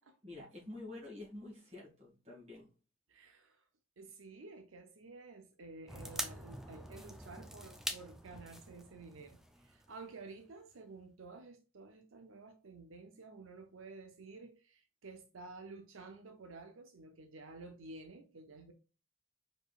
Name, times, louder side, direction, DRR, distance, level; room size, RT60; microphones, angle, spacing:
voice 1, 0.2-2.7, left 2 dB, 30° right, 2.3 m, -48 dB
voice 2, 3.1-3.6 4.0-18.7, right 3 dB, 80° right, 0.6 m, -52 dB
sound 1, 5.9-10.4 10.7-10.8, equal, ahead, 0.4 m, -45 dB
4.9 x 4.3 x 2.4 m
head